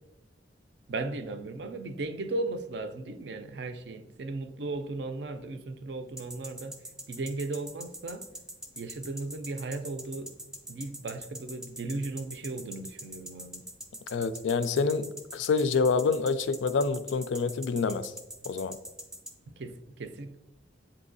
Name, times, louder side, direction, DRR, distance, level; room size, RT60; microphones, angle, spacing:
voice 1, 0.9-6.8 7.1-8.3 8.8-10.3 10.7-13.6 19.5-20.4, right 2 dB, 65° right, 0.4 m, -36 dB
sound 1, 6.2-19.3, right 1 dB, 5° right, 0.4 m, -42 dB
voice 2, 14.1-18.1 18.5-18.8, left 4 dB, 85° left, 0.3 m, -27 dB
7.6 x 2.7 x 2.6 m
head